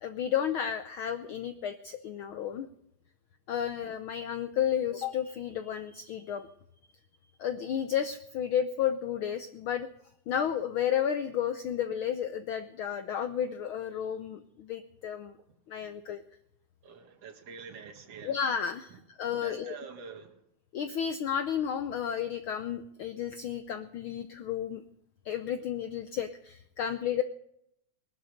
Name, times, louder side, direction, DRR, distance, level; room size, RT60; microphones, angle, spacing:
voice 1, 0.0-2.7 3.5-6.5 7.4-9.9 10.3-15.3 15.7-16.2 18.2-19.8 20.7-24.8 25.2-27.2, left 9 dB, 85° left, 9 dB, 1.1 m, -32 dB
voice 2, 16.8-18.4 18.9-19.0 19.4-20.3 26.9-27.0, right 6 dB, 60° right, 4 dB, 2.9 m, -46 dB
20.0 x 12.0 x 5.2 m, 0.76 s
omnidirectional pair, 3.3 m